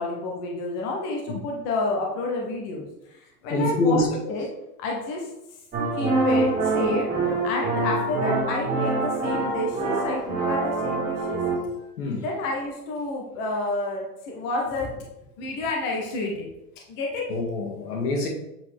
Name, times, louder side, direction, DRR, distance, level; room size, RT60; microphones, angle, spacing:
voice 1, 0.0-4.5 4.8-5.3 5.9-7.1 7.4-11.5 12.2-15.0 15.4-16.5 16.9-17.3, left 2 dB, 15° left, 0.3 m, -29 dB
voice 2, 3.5-4.2 12.0-12.3 17.3-18.3, left 2 dB, 70° left, 2.0 m, -25 dB
sound 1, 5.7-11.6, right 3 dB, 20° right, 1.8 m, -25 dB
7.3 x 4.6 x 3.4 m
hypercardioid pair, 130°, 47 cm